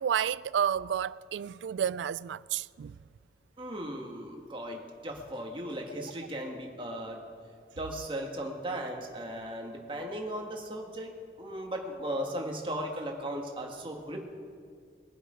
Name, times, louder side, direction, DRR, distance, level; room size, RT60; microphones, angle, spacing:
voice 1, 0.0-3.0, right 8 dB, 85° right, 0.3 m, -30 dB
voice 2, 3.6-7.2 7.8-11.1 11.4-14.3, right 1 dB, 30° right, 1.7 m, -37 dB
22.5 x 7.8 x 4.9 m
head